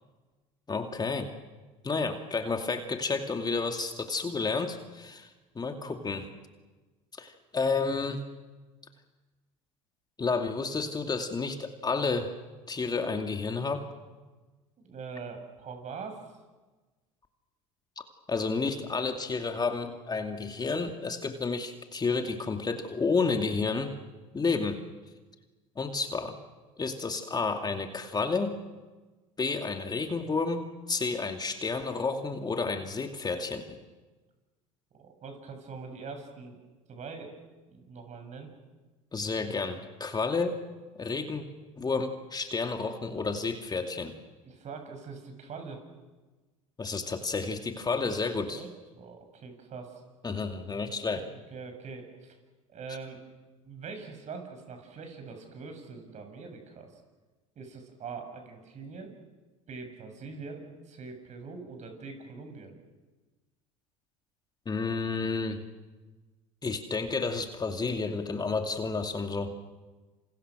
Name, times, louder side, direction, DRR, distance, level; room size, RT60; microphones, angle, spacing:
voice 1, 0.7-1.3 1.8-5.3 5.5-6.3 7.2-8.2 10.2-12.3 12.7-13.9 18.0-18.1 18.3-23.9 24.3-24.8 25.8-26.4 26.8-28.5 29.4-33.6 39.1-40.6 41.0-41.4 41.8-44.1 46.8-48.6 50.2-51.3 64.7-65.6 66.6-69.5, left 4 dB, 25° left, 5 dB, 2.5 m, -31 dB
voice 2, 5.6-6.1 14.8-16.2 34.9-36.6 36.9-37.3 37.7-38.5 44.4-45.8 48.5-48.7 49.0-50.0 50.8-52.4 52.7-53.2 53.6-56.9 57.6-59.1 59.7-62.7, right 4 dB, 45° right, 5 dB, 7.1 m, -43 dB
28.5 x 27.5 x 6.4 m, 1.2 s
hypercardioid pair, 75°, 17 cm